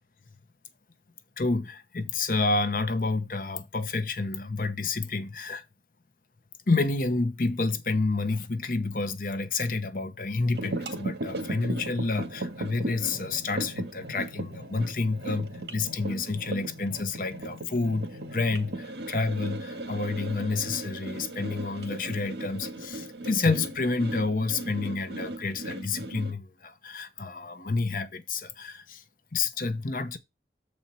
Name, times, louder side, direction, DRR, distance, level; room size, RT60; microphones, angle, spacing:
voice 1, 1.4-5.6 6.7-29.0 29.3-30.2, left 3 dB, 50° left, 0.8 m, -29 dB
sound 1, 10.5-26.3, right 1 dB, 75° right, 1.7 m, -37 dB
7.1 x 4.3 x 5.4 m
head